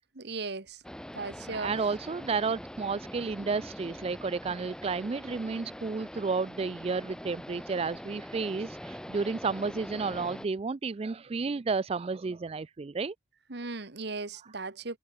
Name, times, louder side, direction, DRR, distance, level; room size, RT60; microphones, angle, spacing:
voice 1, 0.2-0.8 1.1-1.7 13.5-15.0, right 3 dB, 60° right, 1.6 m, -37 dB
sound 1, 0.8-10.5, equal, 5° left, 4.3 m, -43 dB
voice 2, 1.5-13.1, right 4 dB, 30° right, 0.4 m, -32 dB
open air
head